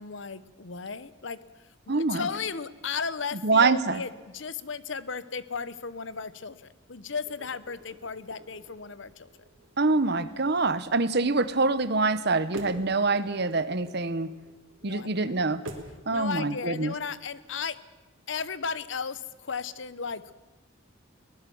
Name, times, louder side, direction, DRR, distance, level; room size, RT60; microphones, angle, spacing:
voice 1, 0.0-1.4 1.9-9.3 14.8-15.4 16.1-17.8 18.3-20.3, left 5 dB, 65° left, 15 dB, 0.9 m, -35 dB
voice 2, 1.9-2.3 3.4-4.0 9.8-14.3 14.8-15.6 16.1-16.9, right 3 dB, 55° right, 14 dB, 1.0 m, -25 dB
sound 1, 7.2-16.0, right 1 dB, 70° right, 3.1 m, -46 dB
22.5 x 19.5 x 7.1 m, 1.1 s
head